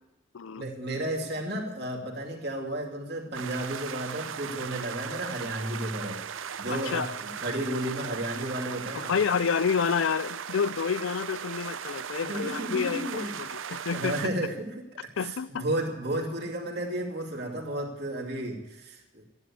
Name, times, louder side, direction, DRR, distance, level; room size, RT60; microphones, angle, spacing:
voice 1, 0.6-9.1 12.3-13.4 13.9-14.7 15.0-19.2, right 1 dB, 55° right, 2.6 m, -33 dB
sound 1, 3.3-14.3, right 8 dB, 80° right, 0.6 m, -38 dB
voice 2, 6.7-7.1 8.9-14.2 15.2-15.6, left 6 dB, 75° left, 0.4 m, -29 dB
13.5 x 11.0 x 8.5 m
head